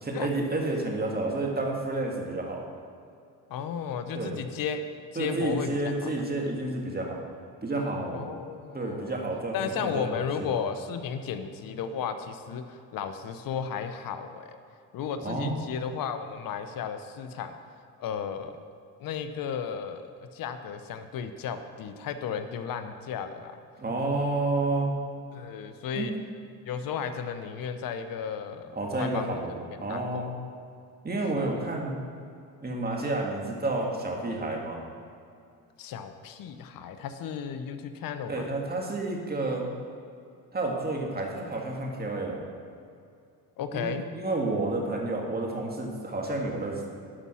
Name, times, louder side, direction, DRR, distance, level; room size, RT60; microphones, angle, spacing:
voice 1, 0.0-2.6 4.1-4.4 5.2-7.2 7.6-8.3 8.7-10.5 15.2-15.6 23.8-25.0 25.9-26.1 28.7-30.3 31.0-32.0 32.6-34.8 38.3-39.7 40.5-42.4 43.7-46.9, right 2 dB, 25° right, 0 dB, 2.1 m, -30 dB
voice 2, 3.5-4.8 5.1-6.1 8.1-9.2 9.5-14.6 14.9-17.6 18.0-18.6 19.0-23.5 25.3-26.1 26.6-29.4 29.9-30.3 31.3-31.6 35.8-38.5 43.6-44.0, left 7 dB, 65° left, 9 dB, 0.9 m, -34 dB
11.5 x 5.6 x 6.3 m, 2.5 s
cardioid pair, 90°, 37 cm